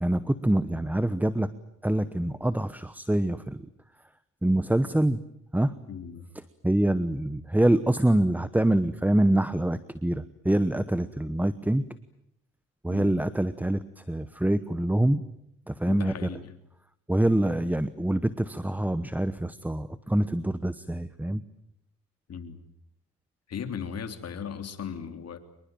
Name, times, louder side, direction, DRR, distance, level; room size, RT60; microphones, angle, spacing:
voice 1, 0.0-1.5 1.8-3.7 4.4-5.2 5.5-5.8 6.6-11.9 12.8-15.2 15.7-16.3 17.1-21.4, right 1 dB, 5° right, 15 dB, 1.0 m, -25 dB
voice 2, 5.9-6.3 12.9-13.2 15.9-16.5 22.3-22.6 23.5-25.4, left 7 dB, 55° left, 8 dB, 3.3 m, -37 dB
26.0 x 22.5 x 9.1 m, 0.77 s
cardioid pair, 90°, 30 cm